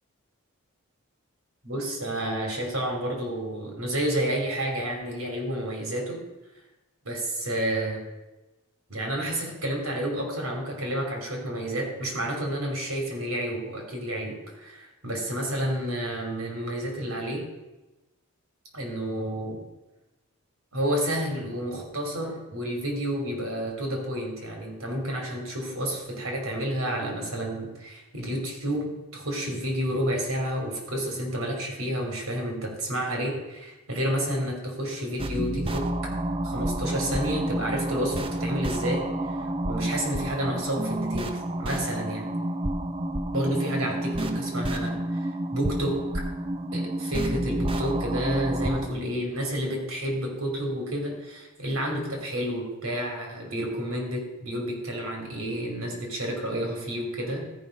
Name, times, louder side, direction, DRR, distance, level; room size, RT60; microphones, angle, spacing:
voice 1, 1.6-6.2 7.0-8.0 8.9-17.4 18.7-19.6 20.7-35.9 36.4-39.3 39.7-42.3 43.3-46.0 46.7-57.5, equal, 75° right, 1 dB, 3.0 m, -30 dB
sound 1, 35.2-48.9, right 1 dB, 25° right, 0.6 m, -29 dB
14.0 x 5.4 x 5.2 m, 1.0 s
head